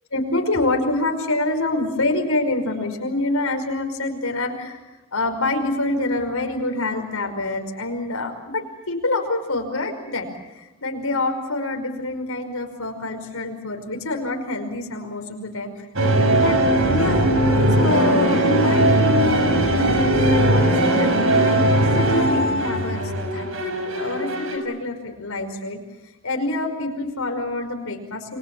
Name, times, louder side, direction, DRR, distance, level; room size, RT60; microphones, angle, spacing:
voice 1, 0.1-4.8 5.1-15.7 16.4-16.6 16.8-17.2 17.8-25.8 26.2-28.4, left 2 dB, 75° left, 4 dB, 5.4 m, -26 dB
sound 1, 16.0-24.6, right 1 dB, 70° right, 5.9 m, -19 dB
30.0 x 23.5 x 7.4 m, 1.0 s
head